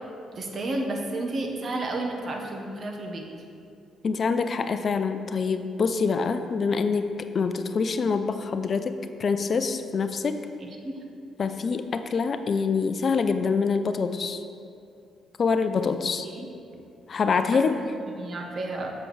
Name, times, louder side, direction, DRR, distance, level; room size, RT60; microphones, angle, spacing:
voice 1, 0.3-3.3 10.8-11.0 16.3-16.5 17.5-17.6 18.1-18.9, right 2 dB, 50° right, 2 dB, 1.1 m, -31 dB
voice 2, 4.0-10.4 11.4-14.4 15.4-16.3 17.1-17.7, left 5 dB, 50° left, 9 dB, 0.4 m, -25 dB
7.6 x 7.2 x 3.2 m, 2.5 s
supercardioid pair, 60°, 0 cm